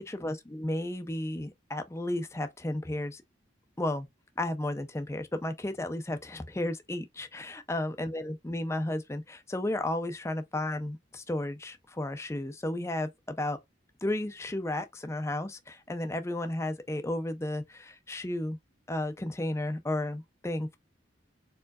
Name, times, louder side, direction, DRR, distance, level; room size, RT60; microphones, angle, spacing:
voice 1, 0.0-3.2 3.8-4.1 4.4-13.6 14.0-18.6 18.9-20.8, left 1 dB, 15° left, 0.5 m, -33 dB
4.5 x 3.7 x 2.4 m
head